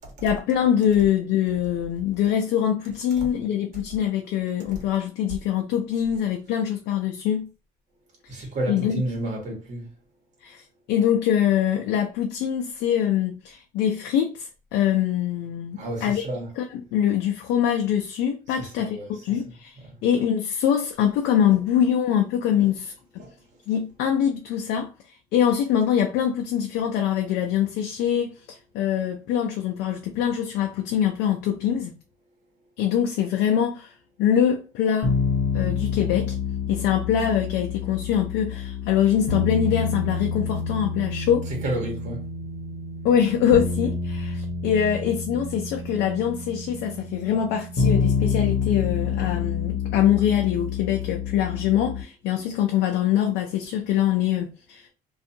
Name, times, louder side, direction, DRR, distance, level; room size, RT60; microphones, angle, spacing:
voice 1, 0.2-7.5 8.3-9.0 10.4-16.2 16.6-16.7 16.9-22.9 23.7-24.9 25.3-31.9 32.8-33.9 34.2-35.2 35.5-36.4 36.7-41.5 43.0-54.9, left 9 dB, 85° left, 0.5 m, -24 dB
voice 2, 8.3-9.9 15.8-16.6 18.6-19.4 19.8-19.9 21.5-21.6 22.6-22.7 23.2-23.3 41.5-42.3, right 1 dB, 45° right, 1.3 m, -31 dB
sound 1, 35.0-52.0, left 5 dB, 55° left, 0.9 m, -28 dB
2.5 x 2.4 x 2.6 m
cardioid pair, 110°, 17 cm